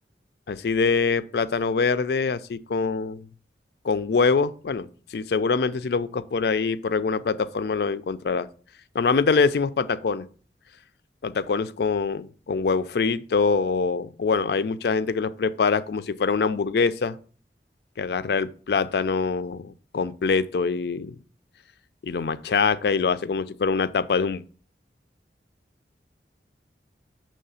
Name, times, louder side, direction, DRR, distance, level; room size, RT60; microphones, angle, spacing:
voice 1, 0.5-3.3 3.8-4.9 5.1-8.5 8.9-10.3 11.2-17.2 18.0-21.2 22.0-24.4, left 4 dB, 65° left, 0.4 m, -24 dB
6.6 x 3.2 x 5.5 m
head